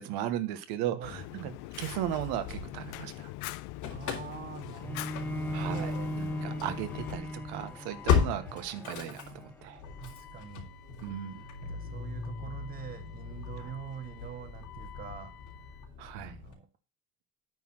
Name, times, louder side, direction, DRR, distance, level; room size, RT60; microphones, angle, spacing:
voice 1, 0.0-1.5 1.8-3.3 5.5-9.8 11.0-11.4 16.0-16.4, right 11 dB, 90° right, 1.3 m, -36 dB
voice 2, 0.9-1.5 3.9-6.1 10.0-10.7 11.6-15.3 15.7-15.8 16.2-16.7, right 8 dB, 25° right, 1.0 m, -44 dB
Fire, 1.0-7.2, left 17 dB, 85° left, 0.6 m, -42 dB
Engine starting / Slam, 2.1-3.2 3.5-16.5, left 7 dB, 50° left, 3.3 m, -37 dB
Bowed string instrument, 4.8-10.0, equal, 5° left, 0.5 m, -38 dB
9.3 x 4.1 x 7.4 m
cardioid pair, 160°, 38 cm